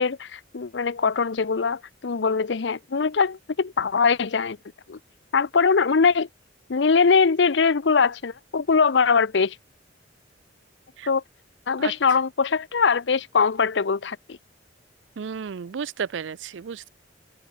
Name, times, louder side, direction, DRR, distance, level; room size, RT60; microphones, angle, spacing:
voice 1, 0.0-4.6 4.9-5.0 5.3-6.3 6.7-9.6 11.1-11.2 11.7-14.4, left 5 dB, 70° left, 0.6 m, -22 dB
voice 2, 15.2-16.9, right 6 dB, 80° right, 0.4 m, -32 dB
head